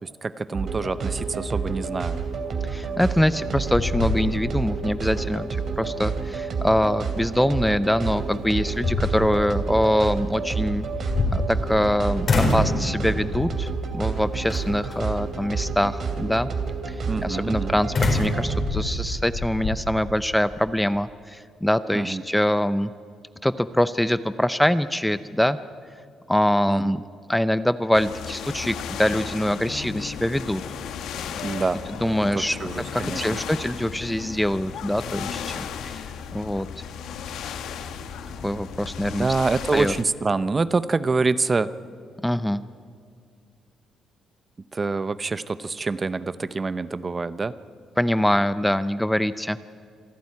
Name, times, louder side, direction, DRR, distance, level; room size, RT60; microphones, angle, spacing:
voice 1, 0.0-2.2 17.1-17.7 21.9-22.2 26.7-27.0 31.4-31.8 32.3-33.4 39.0-41.7 44.7-47.5, right 4 dB, 30° right, 15 dB, 0.7 m, -26 dB
sound 1, 0.5-18.7, right 5 dB, 55° right, 2.9 m, -29 dB
voice 2, 2.6-10.8 11.3-16.5 16.9-17.0 17.2-22.9 23.4-25.6 26.3-27.0 27.3-30.6 32.0-32.6 32.9-36.0 36.3-36.7 38.4-39.3 39.7-39.9 42.2-42.6 48.0-49.6, equal, 5° left, 14 dB, 0.6 m, -24 dB
sound 2, 3.1-3.4 3.7-4.7 5.1-5.2 7.9-8.0 8.5-9.5 10.8-11.9 12.2-12.8 13.3-13.7 14.5-14.9 17.9-19.8, left 3 dB, 50° left, 4.7 m, -25 dB
sound 3, 27.9-40.0, left 7 dB, 80° left, 1.3 m, -35 dB
26.5 x 12.0 x 9.6 m, 2.2 s
cardioid pair, 90°, 0 cm